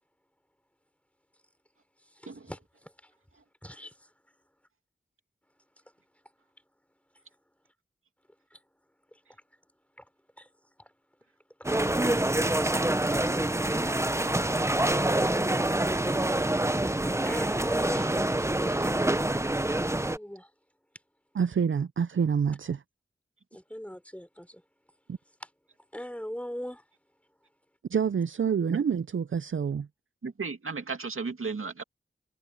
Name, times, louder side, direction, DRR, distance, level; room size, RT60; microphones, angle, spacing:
voice 1, 2.2-3.1 3.6-3.9 8.5-8.6 9.1-9.2 10.4-10.5 10.8-10.9 14.3-14.7 16.5-18.9 19.6-20.5 23.5-24.6 25.9-26.8, equal, 5° left, 4.5 m, -41 dB
sound 1, 11.6-20.2, right 1 dB, 15° right, 0.8 m, -26 dB
voice 2, 21.3-22.8 25.1-25.2 27.9-29.9, right 7 dB, 65° right, 0.5 m, -27 dB
voice 3, 30.2-31.8, right 4 dB, 85° right, 2.5 m, -35 dB
wide cardioid pair, 60°, 21 cm